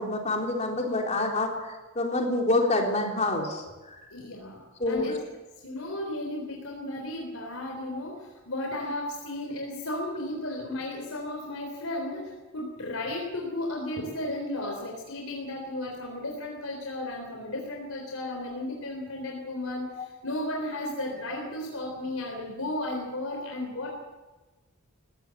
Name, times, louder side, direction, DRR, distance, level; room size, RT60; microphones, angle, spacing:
voice 1, 0.0-1.5 2.0-4.0 4.8-5.1, left 2 dB, 30° left, 1 dB, 3.8 m, -27 dB
voice 2, 4.1-5.2 5.6-23.9, left 1 dB, 75° left, 0 dB, 3.8 m, -34 dB
21.0 x 16.5 x 7.7 m, 1.2 s
head